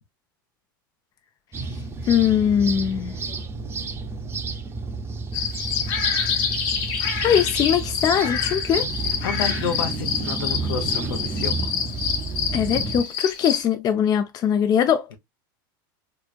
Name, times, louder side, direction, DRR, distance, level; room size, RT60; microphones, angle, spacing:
sound 1, 1.5-13.0, right 4 dB, 20° right, 0.6 m, -31 dB
voice 1, 2.1-3.2 7.2-8.9 12.5-15.1, left 9 dB, 35° left, 0.5 m, -21 dB
sound 2, 5.3-13.6, left 7 dB, 55° left, 1.1 m, -27 dB
voice 2, 9.0-11.7 15.1-15.2, left 7 dB, 80° left, 1.0 m, -30 dB
3.3 x 3.1 x 2.4 m
hypercardioid pair, 105°, 11 cm